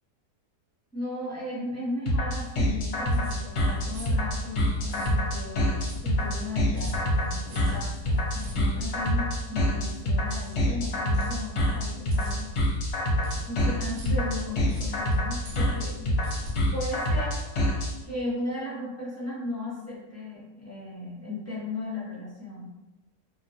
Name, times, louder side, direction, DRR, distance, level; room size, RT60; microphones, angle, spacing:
voice 1, 0.9-12.9 13.4-16.1 16.7-17.4 18.0-22.7, left 2 dB, 20° left, -9 dB, 0.4 m, -36 dB
sound 1, 2.1-17.9, equal, 60° left, 0.8 m, -26 dB
sound 2, 2.9-17.8, left 1 dB, 80° right, 1.2 m, -42 dB
2.9 x 2.2 x 2.7 m, 1.1 s
omnidirectional pair, 1.7 m